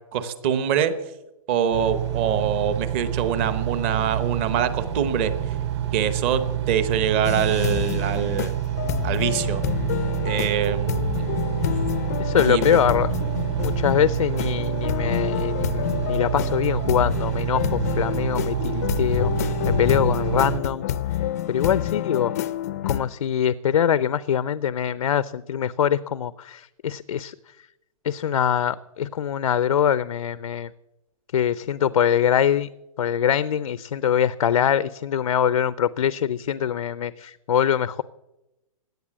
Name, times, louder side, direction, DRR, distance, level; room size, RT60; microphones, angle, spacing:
voice 1, 0.1-0.9 1.5-5.5 5.9-8.5 9.0-9.6 10.2-11.2 12.4-12.8, right 8 dB, 20° right, 12 dB, 0.9 m, -24 dB
Engine, 1.7-20.6, right 11 dB, 50° right, 2.7 m, -27 dB
sound 1, 7.2-23.0, left 11 dB, 25° left, 0.5 m, -28 dB
voice 2, 12.2-13.1 13.6-20.8 21.5-22.3 22.9-27.3 28.0-30.7 31.3-32.7 33.0-38.0, left 9 dB, 75° left, 16 dB, 0.6 m, -23 dB
17.5 x 10.5 x 7.4 m, 0.94 s
hypercardioid pair, 175°, 18 cm